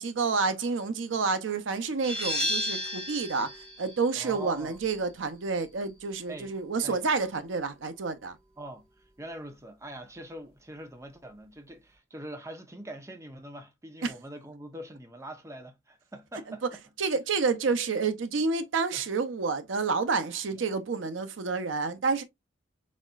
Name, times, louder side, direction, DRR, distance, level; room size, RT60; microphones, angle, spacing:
voice 1, 0.0-3.5 3.8-8.4 14.0-14.1 17.0-22.2, right 4 dB, 85° right, 0.6 m, -29 dB
sound 1, 2.0-7.4, left 1 dB, 30° right, 1.6 m, -35 dB
voice 2, 4.2-4.8 6.3-6.5 6.8-7.0 8.6-8.8 9.2-16.6 18.9-19.0 20.5-20.7, right 1 dB, 15° right, 0.8 m, -43 dB
4.2 x 4.0 x 2.3 m
head